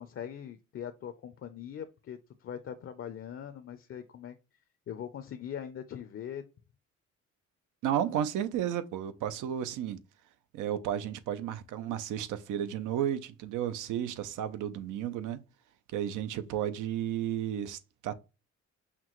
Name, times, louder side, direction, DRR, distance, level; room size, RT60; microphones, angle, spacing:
voice 1, 0.0-4.4 4.9-6.4, left 9 dB, 45° left, 0.5 m, -41 dB
voice 2, 7.8-10.0 10.5-15.4 15.9-18.1, right 10 dB, 85° right, 0.6 m, -33 dB
5.8 x 2.3 x 3.0 m
cardioid pair, 90°, 30 cm